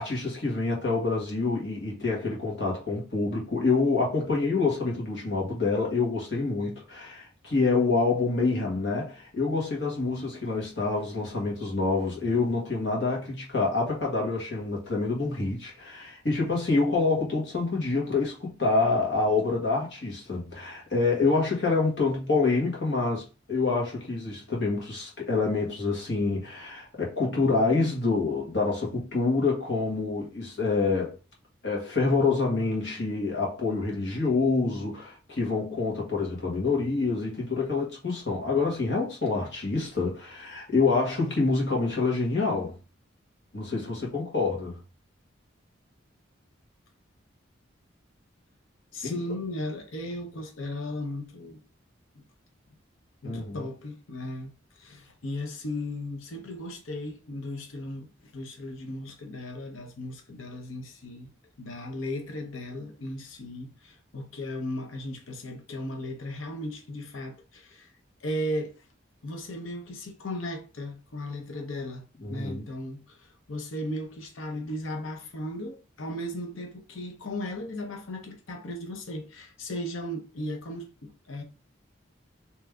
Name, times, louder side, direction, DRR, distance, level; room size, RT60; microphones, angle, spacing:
voice 1, 0.0-31.2 31.6-42.7 43.5-44.8 49.0-49.2 53.2-53.6 72.2-72.6, left 3 dB, 65° left, 1.6 m, -27 dB
voice 2, 48.9-51.6 53.2-61.3 61.6-67.9 68.2-68.7 69.2-81.4, left 1 dB, 90° left, 0.8 m, -36 dB
3.4 x 3.1 x 3.5 m
head